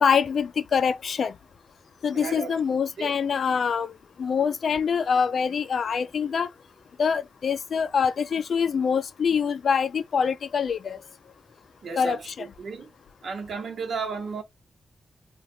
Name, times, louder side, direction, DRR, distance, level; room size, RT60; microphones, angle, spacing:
voice 1, 0.0-1.3 2.0-3.9 4.2-6.5 7.0-11.0 12.0-12.4, left 6 dB, 65° left, 0.4 m, -25 dB
voice 2, 2.1-3.1 11.8-12.9 13.2-14.4, right 5 dB, 70° right, 1.0 m, -34 dB
3.2 x 2.4 x 2.7 m
wide cardioid pair, 95°, 0 cm